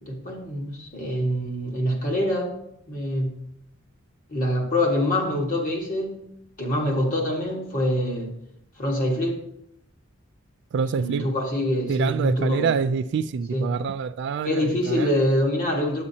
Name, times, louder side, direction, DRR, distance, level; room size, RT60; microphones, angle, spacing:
voice 1, 0.0-2.5 2.9-3.4 4.3-6.2 6.6-8.3 8.8-9.4 10.9-12.7 13.5-13.7 14.4-16.0, left 1 dB, 45° left, 1.6 m, -25 dB
voice 2, 10.7-11.3 11.9-15.1, right 5 dB, 60° right, 0.3 m, -26 dB
8.5 x 8.4 x 2.8 m
head